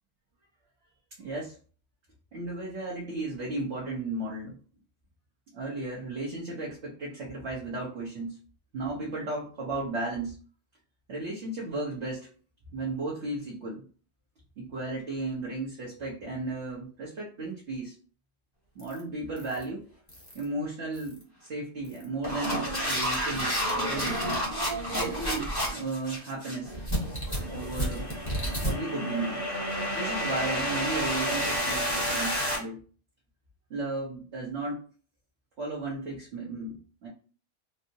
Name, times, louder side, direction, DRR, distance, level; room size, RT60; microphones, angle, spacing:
voice 1, 1.2-1.5 2.3-4.5 5.5-8.4 8.7-10.4 11.1-12.3 12.7-13.8 14.6-17.9 18.7-19.8 20.3-21.1 21.4-24.2 24.9-26.7 27.5-28.0 28.6-29.4 29.9-32.8 33.7-34.8 35.6-37.1, right 2 dB, 55° right, -5 dB, 1.1 m, -34 dB
sound 1, 18.8-19.0 19.4-19.6 20.1-20.4 21.0-21.2 21.8-32.6, equal, 15° left, 1.1 m, -30 dB
4.5 x 2.0 x 2.7 m, 0.40 s
omnidirectional pair, 1.6 m